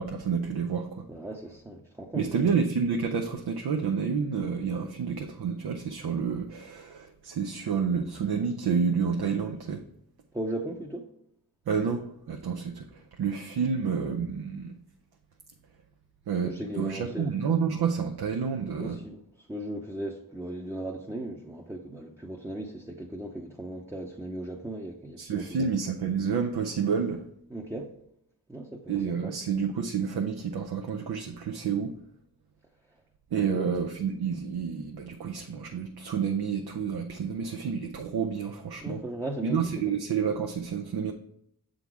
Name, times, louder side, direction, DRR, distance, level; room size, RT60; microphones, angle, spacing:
voice 1, 0.0-1.1 2.1-9.8 11.7-14.7 16.3-19.0 25.2-27.2 28.9-31.9 33.3-39.0 39.4-41.1, right 6 dB, 75° right, 3 dB, 0.6 m, -29 dB
voice 2, 1.1-2.6 10.3-11.1 16.4-17.3 18.8-19.2 19.5-25.7 27.5-27.9 28.5-29.3 33.3-33.7 38.8-39.6, right 1 dB, 10° right, 0 dB, 0.7 m, -37 dB
6.9 x 3.9 x 4.7 m, 0.75 s
cardioid pair, 55°, 39 cm